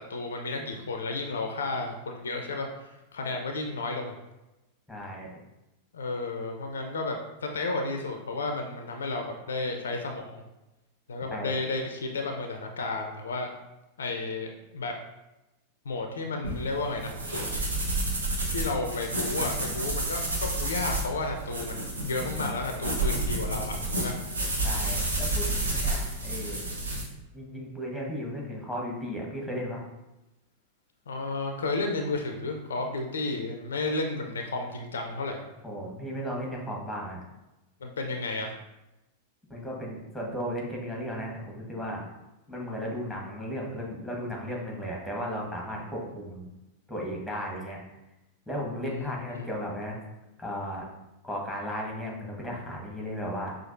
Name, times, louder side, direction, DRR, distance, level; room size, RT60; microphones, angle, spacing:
voice 1, 0.0-4.2 5.9-10.4 11.1-13.5 14.0-14.9 15.9-17.1 18.5-24.2 31.1-35.4 37.8-38.5 48.8-49.5, left 3 dB, 65° left, 3 dB, 0.4 m, -32 dB
voice 2, 4.9-5.3 11.3-11.5 24.6-26.6 27.3-29.8 35.6-37.2 39.5-42.1 42.5-46.5 46.9-47.8 48.5-50.0 50.4-50.9 51.2-53.6, equal, ahead, -2 dB, 1.2 m, -35 dB
sound 1, 16.4-27.0, right 1 dB, 70° right, 0.9 m, -30 dB
5.8 x 2.5 x 2.5 m, 0.98 s
figure-of-eight pair, 90°, 0 cm